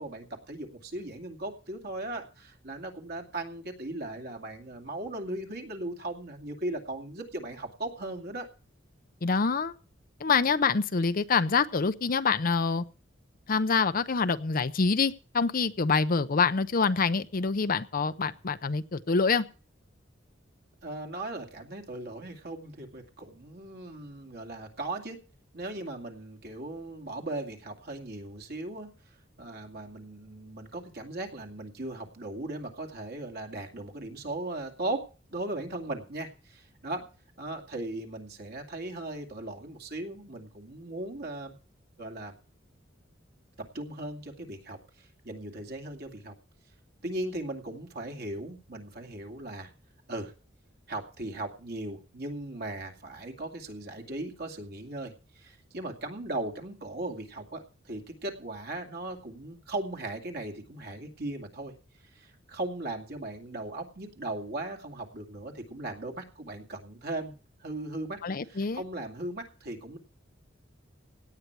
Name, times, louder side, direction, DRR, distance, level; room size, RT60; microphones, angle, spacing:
voice 1, 0.0-8.5 20.8-25.2 25.5-28.9 29.4-37.1 37.4-41.5 42.0-42.3 43.7-46.4 47.0-49.7 50.1-50.3 50.9-61.7 62.1-67.3 67.6-68.2 68.5-70.0, right 2 dB, 55° right, 3 dB, 2.3 m, -38 dB
voice 2, 9.2-9.7 10.2-12.8 13.5-19.4 68.2-68.8, left 4 dB, 50° left, 13 dB, 0.6 m, -26 dB
17.5 x 9.5 x 4.6 m, 0.37 s
head